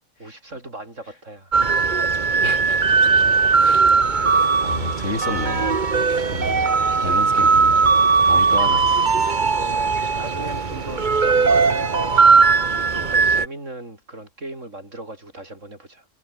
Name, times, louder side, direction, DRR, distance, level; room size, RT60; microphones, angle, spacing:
voice 1, 0.2-2.0 6.1-6.4 8.6-8.8 9.6-12.2 12.6-16.1, right 2 dB, 85° right, 6.8 m, -38 dB
sound 1, 1.5-13.5, right 4 dB, 40° right, 1.4 m, -18 dB
voice 2, 2.4-2.8 3.6-3.8 4.1-4.3 4.6-5.7 6.3-6.7 7.0-8.9, left 2 dB, 85° left, 5.0 m, -31 dB
omnidirectional pair, 1.3 m